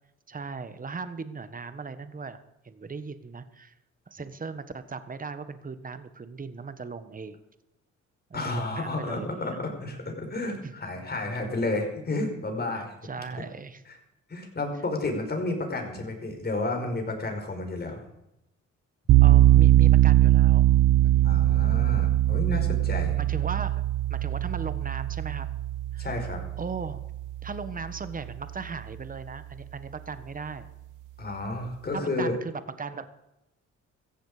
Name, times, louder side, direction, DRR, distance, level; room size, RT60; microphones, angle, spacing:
voice 1, 0.3-3.7 4.1-7.4 8.3-9.6 10.6-10.7 12.7-13.8 19.2-20.6 21.0-21.5 23.2-25.5 25.9-26.1 26.6-27.0 27.4-30.7 31.9-33.1, right 4 dB, 30° right, 12 dB, 1.4 m, -38 dB
voice 2, 8.3-12.9 14.3-18.0 21.2-23.1 26.0-26.4 31.2-32.3, left 2 dB, 30° left, 4 dB, 5.0 m, -31 dB
sound 1, 19.1-28.0, right 14 dB, 80° right, 0.7 m, -21 dB
16.5 x 15.0 x 5.0 m, 0.91 s
cardioid pair, 90°, 30 cm